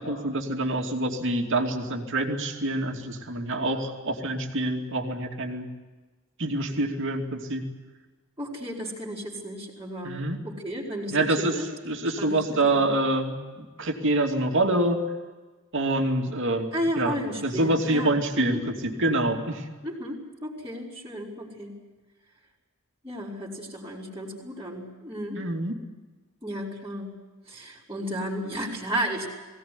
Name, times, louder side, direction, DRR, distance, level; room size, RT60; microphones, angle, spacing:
voice 1, 0.0-5.7 6.4-7.6 10.0-10.4 11.1-11.5 11.9-15.0 15.7-16.7 17.0-17.2 17.4-19.6 25.4-25.7, right 2 dB, 60° right, 3 dB, 2.7 m, -26 dB
voice 2, 8.4-11.7 12.2-12.8 16.7-18.6 19.8-21.8 23.0-25.4 26.4-27.2 27.5-29.3, equal, 15° right, -9 dB, 3.9 m, -33 dB
21.0 x 17.5 x 9.8 m, 1.3 s
head